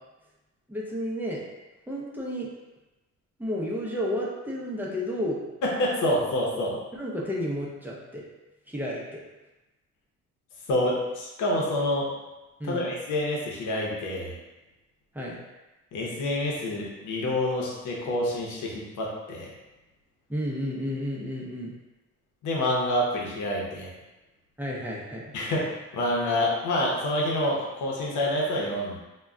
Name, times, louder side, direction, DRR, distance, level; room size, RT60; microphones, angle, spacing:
voice 1, 0.7-1.4 1.9-2.5 3.4-5.4 6.9-8.2 8.7-9.2 12.6-12.9 15.1-15.4 20.3-21.7 24.6-25.3, equal, 5° right, -4 dB, 0.6 m, -32 dB
voice 2, 5.6-6.8 10.7-12.1 12.6-14.3 15.9-19.5 22.4-23.9 25.3-29.0, left 1 dB, 80° left, -3 dB, 0.8 m, -27 dB
2.2 x 2.2 x 3.6 m, 1.1 s
cardioid pair, 90°, 30 cm